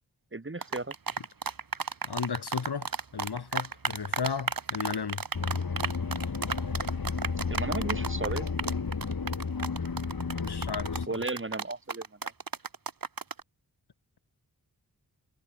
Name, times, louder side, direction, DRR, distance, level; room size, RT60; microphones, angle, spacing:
voice 1, 0.3-0.9 7.5-8.5 11.1-12.3, right 2 dB, 30° right, 5.5 m, -35 dB
sound 1, 0.6-13.4, right 5 dB, 60° right, 3.3 m, -33 dB
voice 2, 2.0-5.2 10.4-11.1, left 6 dB, 85° left, 3.6 m, -34 dB
sound 2, 5.3-11.1, left 5 dB, 65° left, 4.7 m, -32 dB
wide cardioid pair, 90°, 38 cm